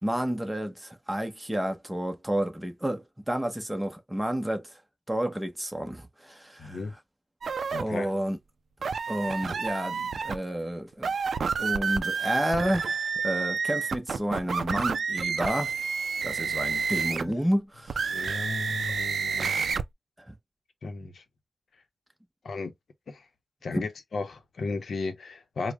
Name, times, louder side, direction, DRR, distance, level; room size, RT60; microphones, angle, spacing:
voice 1, 0.0-4.7 5.1-6.9 7.7-8.4 9.1-11.1 11.6-15.7 16.2-18.5 20.3-20.4 23.7-23.9, equal, 10° right, 0.8 m, -30 dB
voice 2, 6.6-6.9 7.7-8.1 17.2-17.3 18.1-19.5 20.8-21.2 22.4-22.7 23.1-23.2 23.6-25.7, left 3 dB, 80° left, 0.7 m, -35 dB
sound 1, 7.4-7.8 8.8-10.4 10.9-17.3 17.9-19.8, right 5 dB, 80° right, 0.3 m, -29 dB
4.7 x 2.1 x 2.2 m
wide cardioid pair, 100°, 0 cm